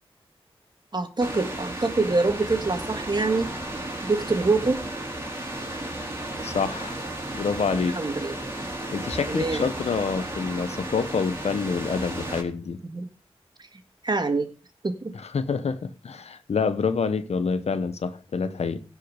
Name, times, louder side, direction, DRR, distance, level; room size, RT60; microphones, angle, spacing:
voice 1, 0.9-3.6 4.0-4.9 7.9-8.3 9.3-9.7 12.8-13.1 14.0-14.5 14.8-15.2 18.7-18.8, right 3 dB, 45° right, 1.9 m, -25 dB
sound 1, 1.2-12.4, right 1 dB, 25° right, 4.2 m, -34 dB
voice 2, 6.4-7.0 7.3-8.0 8.9-12.8 15.1-18.8, left 5 dB, 85° left, 1.0 m, -27 dB
16.5 x 5.6 x 6.6 m
wide cardioid pair, 60°, 11 cm